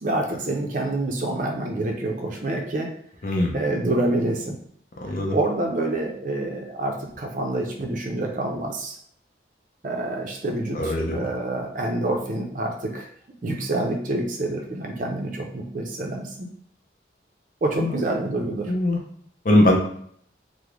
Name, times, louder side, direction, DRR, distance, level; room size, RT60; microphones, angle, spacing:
voice 1, 0.0-2.9 3.5-4.6 5.3-9.0 9.8-13.1 13.4-16.3 17.6-18.7, right 2 dB, 45° right, 2 dB, 0.5 m, -27 dB
voice 2, 3.2-3.6 5.0-5.4 10.7-11.2 17.8-18.0 18.7-19.0 19.4-19.8, left 1 dB, 50° left, 1 dB, 0.5 m, -21 dB
3.6 x 2.0 x 3.0 m, 0.64 s
head